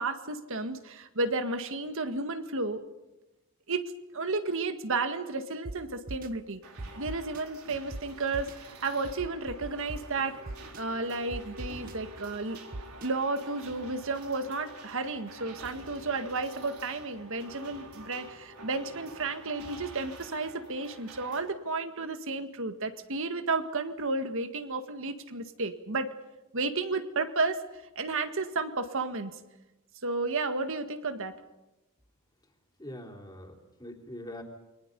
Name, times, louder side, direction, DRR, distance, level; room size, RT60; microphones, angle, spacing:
voice 1, 0.0-2.8 3.7-6.6 7.0-10.4 10.8-12.6 13.0-26.1 26.5-27.6 28.0-29.3 30.0-31.3, right 3 dB, 65° right, 8 dB, 1.8 m, -32 dB
sound 1, 5.6-5.7 6.1-6.3 6.8-7.4 7.9-8.0 8.3-8.5 9.0-10.0 10.5-10.8 11.3-11.9 12.7-13.1, right 2 dB, 40° right, 0.8 m, -38 dB
sound 2, 6.6-21.4, right 2 dB, 85° right, 4.2 m, -48 dB
voice 2, 32.8-34.4, left 1 dB, 20° left, 1 dB, 3.5 m, -43 dB
29.0 x 23.5 x 5.4 m, 1.0 s
head